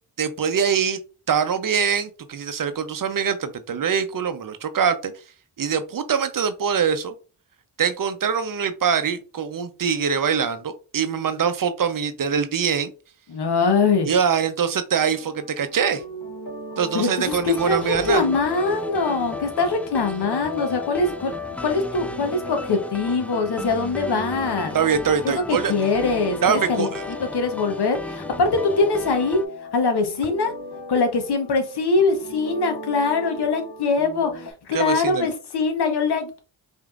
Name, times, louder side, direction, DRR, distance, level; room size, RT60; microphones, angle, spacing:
voice 1, 0.2-1.0 1.3-5.1 5.6-7.1 7.8-12.9 14.1-16.0 16.8-18.2 24.7-25.7 26.4-27.0 34.7-35.3, right 7 dB, 50° right, 10 dB, 0.7 m, -23 dB
voice 2, 13.3-14.1 16.9-24.7 25.2-26.9 27.2-29.4 29.7-30.5 30.9-36.4, left 4 dB, 65° left, 5 dB, 1.0 m, -23 dB
sound 1, 15.0-34.5, left 2 dB, 45° left, 1.3 m, -37 dB
sound 2, 17.2-29.5, left 2 dB, 5° left, 0.3 m, -35 dB
5.0 x 2.7 x 2.4 m, 0.34 s
cardioid pair, 55°, 43 cm